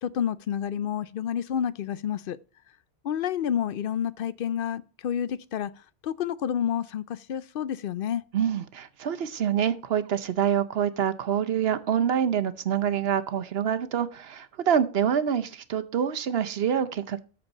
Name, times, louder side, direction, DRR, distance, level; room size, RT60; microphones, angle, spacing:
voice 1, 0.0-2.4 3.0-5.7 6.0-8.2, left 9 dB, 65° left, 0.7 m, -29 dB
voice 2, 8.3-17.2, right 8 dB, 70° right, 1.0 m, -26 dB
13.5 x 4.4 x 4.0 m
omnidirectional pair, 1.1 m